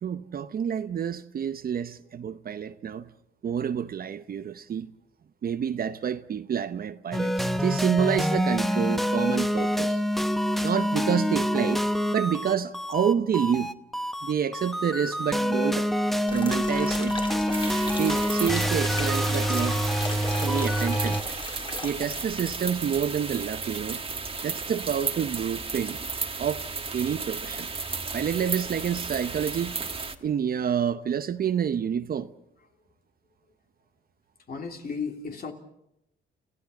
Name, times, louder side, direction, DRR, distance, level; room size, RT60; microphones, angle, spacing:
voice 1, 0.0-3.1 3.4-4.9 5.4-10.0 10.6-11.8 12.1-13.7 14.2-15.9 16.3-17.2 18.0-19.8 20.4-21.2 21.8-24.0 24.4-26.0 26.4-26.7 26.9-27.7 28.1-29.8 30.2-32.3, right 8 dB, 50° right, 0.8 m, -28 dB
sound 1, 7.1-21.2, equal, ahead, 1.1 m, -26 dB
sound 2, 16.3-22.6 22.8-22.9, left 2 dB, 25° left, 3.4 m, -37 dB
sound 3, 17.5-30.2, right 4 dB, 25° right, 1.6 m, -34 dB
voice 2, 30.0-30.5 34.5-35.5, left 5 dB, 50° left, 3.2 m, -37 dB
29.5 x 15.0 x 7.1 m
cardioid pair, 90°, 20 cm